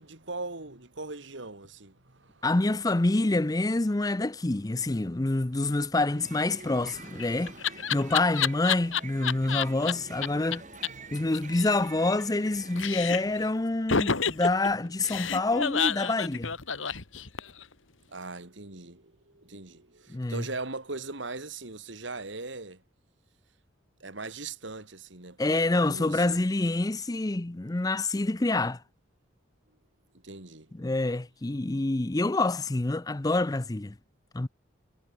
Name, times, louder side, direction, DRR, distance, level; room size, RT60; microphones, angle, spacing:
voice 1, 0.0-2.4 5.1-5.7 7.6-8.0 10.0-10.1 10.9-11.3 18.1-22.8 24.0-25.6 25.8-26.4 30.2-30.7, right 3 dB, 70° right, 2.7 m, -40 dB
voice 2, 2.4-10.6 11.1-16.5 20.1-20.5 25.4-28.8 30.7-33.9 34.3-34.5, left 2 dB, 20° left, 0.5 m, -27 dB
sound 1, 6.0-13.7, right 4 dB, 40° right, 6.1 m, -47 dB
Laughter, 6.8-9.9 10.2-10.3 10.5-10.6 10.8-10.9 11.2-12.5 12.8-13.4 13.9-17.6, left 6 dB, 90° left, 2.0 m, -29 dB
head